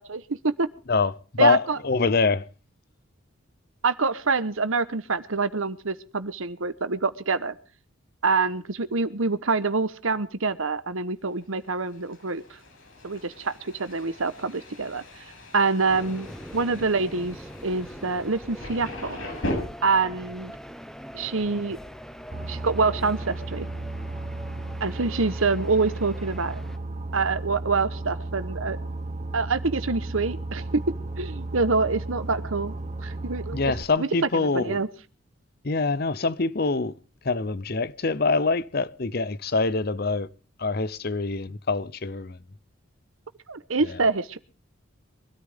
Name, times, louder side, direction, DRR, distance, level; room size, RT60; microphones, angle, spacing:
voice 1, 0.1-0.7 1.4-1.8 3.8-7.5 8.2-12.4 13.0-15.0 15.5-17.4 17.6-19.2 19.8-20.5 21.1-21.8 22.5-23.7 24.8-26.6 27.1-28.8 29.3-30.8 31.2-32.7 33.0-33.6 34.0-34.9 43.5-44.4, right 4 dB, 75° right, 1.1 m, -26 dB
voice 2, 0.9-2.4 33.5-34.8 35.6-36.9 37.2-40.3 40.6-42.4, left 4 dB, 45° left, 0.7 m, -25 dB
Thunder, 11.4-19.5, left 1 dB, 70° left, 7.5 m, -39 dB
sound 1, 15.9-26.8, equal, ahead, 1.0 m, -42 dB
Boat Water vehicle, 22.3-33.8, right 2 dB, 30° right, 1.0 m, -34 dB
23.5 x 13.0 x 3.6 m
head